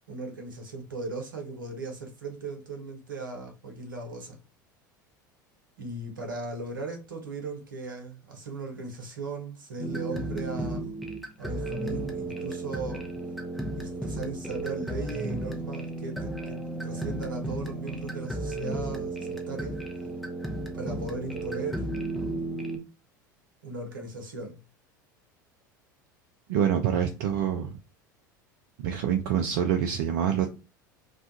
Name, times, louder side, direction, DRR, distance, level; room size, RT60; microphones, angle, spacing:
voice 1, 0.1-4.4 5.8-10.9 11.4-13.1 13.7-19.8 20.7-22.0 23.6-24.6, right 3 dB, 80° right, 0.8 m, -37 dB
sound 1, 9.8-22.8, right 2 dB, ahead, 0.6 m, -34 dB
voice 2, 26.5-27.8 28.8-30.5, right 9 dB, 60° right, 0.4 m, -26 dB
2.3 x 2.2 x 2.7 m
figure-of-eight pair, 75°, 11 cm